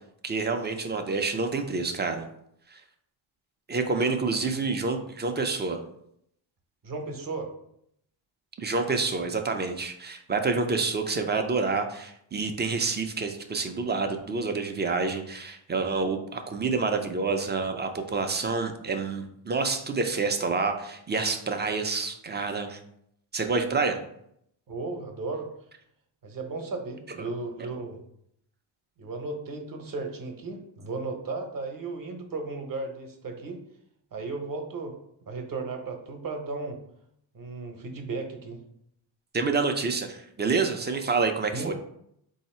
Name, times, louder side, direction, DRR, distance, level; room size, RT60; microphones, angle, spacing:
voice 1, 0.2-2.2 2.7-2.8 3.7-5.8 8.6-22.8 23.3-24.0 39.3-41.7, right 4 dB, 25° right, 6 dB, 0.4 m, -28 dB
voice 2, 6.8-7.5 24.7-25.5 26.2-28.0 29.0-33.6 34.1-34.9 35.3-36.8 37.3-38.6 41.5-41.7, right 3 dB, 45° right, 4 dB, 0.8 m, -35 dB
3.9 x 2.7 x 4.2 m, 0.72 s
cardioid pair, 110°, 49 cm